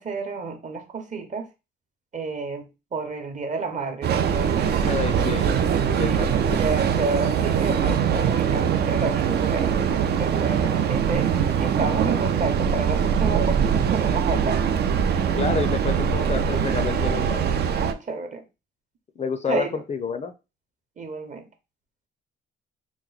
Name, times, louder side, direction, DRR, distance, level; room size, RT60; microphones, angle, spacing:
voice 1, 0.0-1.5 2.1-4.9 5.3-14.8 17.7-18.4 19.5-19.8 21.0-21.5, right 3 dB, 40° right, 0.8 m, -31 dB
Train, 4.0-17.9, right 7 dB, 55° right, 0.4 m, -22 dB
voice 2, 4.8-5.5 5.9-6.6 10.5-10.8 15.3-17.5 19.2-20.3, left 5 dB, 35° left, 0.5 m, -29 dB
3.0 x 2.1 x 3.9 m
cardioid pair, 90°, 20 cm